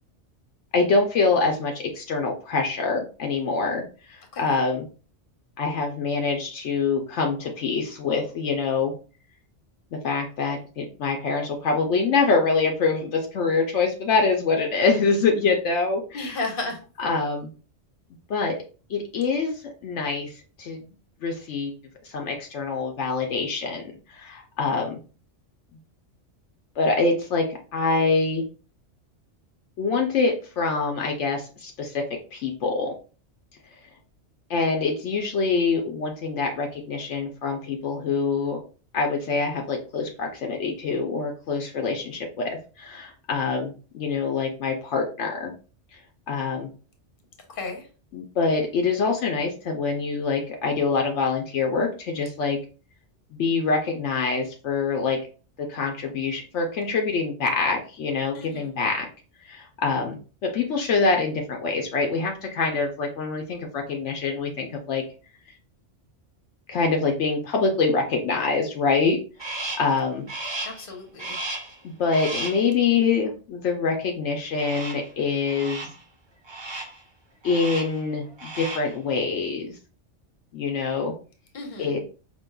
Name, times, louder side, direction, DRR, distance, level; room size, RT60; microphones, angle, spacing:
voice 1, 0.7-4.9 5.6-8.9 9.9-16.4 17.0-17.5 18.3-18.6 18.9-20.3 20.6-20.8 21.2-21.7 22.0-23.8 24.1-25.0 26.8-28.4 29.8-32.1 32.3-32.9 34.5-38.6 38.9-45.5 46.3-46.7 48.1-52.6 53.3-55.2 55.7-59.1 59.4-65.0 66.7-69.2 69.5-70.3 71.8-75.9 77.4-79.8 80.5-81.1 81.8-82.0, left 4 dB, 75° left, 2 dB, 1.0 m, -25 dB
voice 2, 16.1-16.8 47.5-47.9 58.3-58.7 70.6-71.4 81.5-81.9, left 3 dB, 50° left, 3 dB, 1.1 m, -33 dB
Crow, 69.4-70.0 70.3-70.9 71.2-71.8 72.1-72.7 74.6-75.1 75.5-76.0 76.5-77.0 77.4-78.0 78.3-79.0, right 2 dB, 30° right, 0.6 m, -34 dB
5.3 x 2.8 x 2.3 m, 0.37 s
omnidirectional pair, 1.2 m